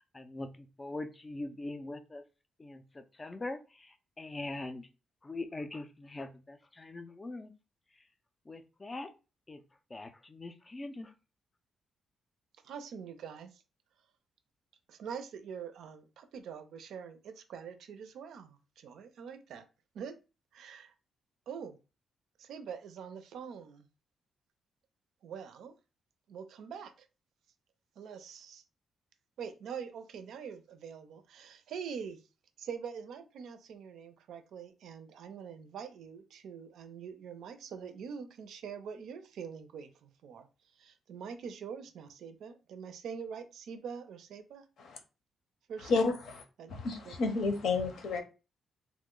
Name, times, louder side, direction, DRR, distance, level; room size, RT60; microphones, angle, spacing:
voice 1, 0.1-2.2 2.6-4.9 5.2-7.5 8.5-9.1 9.5-9.6 9.9-11.1, left 2 dB, 15° left, 9 dB, 0.3 m, -42 dB
voice 2, 12.6-13.6 14.9-19.7 19.9-20.2 20.5-20.9 21.5-21.8 22.4-23.9 25.2-25.7 26.3-27.1 28.0-28.6 29.4-32.2 32.6-40.5 40.7-44.7 45.7-46.2 46.6-46.7 47.0-47.1, right 7 dB, 75° right, 9 dB, 0.4 m, -44 dB
voice 3, 46.7-48.2, left 4 dB, 65° left, 5 dB, 0.6 m, -30 dB
2.9 x 2.1 x 3.6 m, 0.31 s
wide cardioid pair, 175°, 0 cm